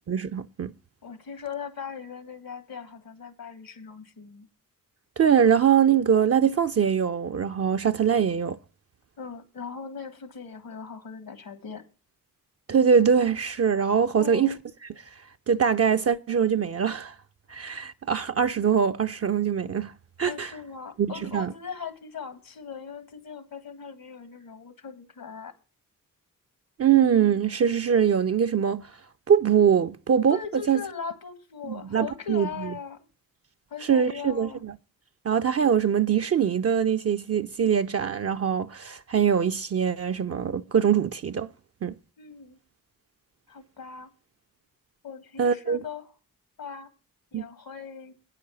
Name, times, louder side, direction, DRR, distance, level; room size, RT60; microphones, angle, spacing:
voice 1, 0.1-0.7 5.2-8.6 12.7-14.5 15.5-17.1 17.5-19.9 20.2-20.5 21.0-21.5 26.8-28.9 29.3-30.8 31.7-32.7 33.9-34.7 35.3-41.5 41.8-41.9 45.4-45.8 47.3-47.4, right 7 dB, 45° right, 0.5 m, -23 dB
voice 2, 1.0-4.5 9.2-11.8 14.1-14.6 20.2-25.5 30.3-33.1 33.7-34.6 42.2-42.6 43.5-44.1 45.0-46.1 46.6-46.9 47.3-48.2, left 6 dB, 80° left, 1.7 m, -39 dB
9.2 x 5.7 x 6.8 m
cardioid pair, 60°, 34 cm